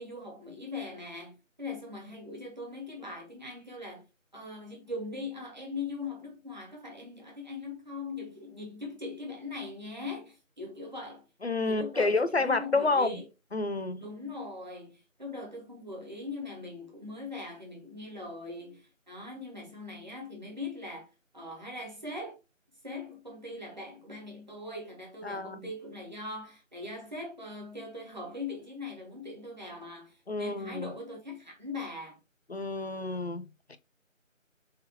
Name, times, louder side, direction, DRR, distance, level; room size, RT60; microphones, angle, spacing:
voice 1, 0.0-4.1 4.3-11.2 11.7-13.2 14.0-21.1 21.3-22.4 22.8-32.2, left 2 dB, 35° right, 1.0 m, -41 dB
voice 2, 11.4-13.2 13.5-14.0 25.2-25.7 30.3-30.9 32.5-33.8, left 3 dB, 50° left, 0.5 m, -29 dB
4.1 x 3.7 x 2.7 m
figure-of-eight pair, 170°, 40 cm